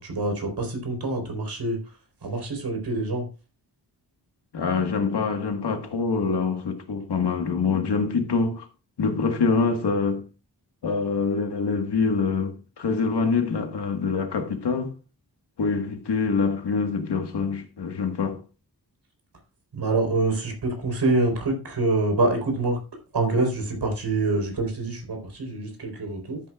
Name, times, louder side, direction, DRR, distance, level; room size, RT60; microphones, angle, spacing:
voice 1, 0.0-3.3 19.7-22.8 23.1-26.4, right 2 dB, 85° right, 4.1 m, -26 dB
voice 2, 4.5-8.6 9.0-10.2 10.8-14.9 15.6-18.4, left 4 dB, 85° left, 1.6 m, -25 dB
14.0 x 8.6 x 2.4 m
wide cardioid pair, 115°, 39 cm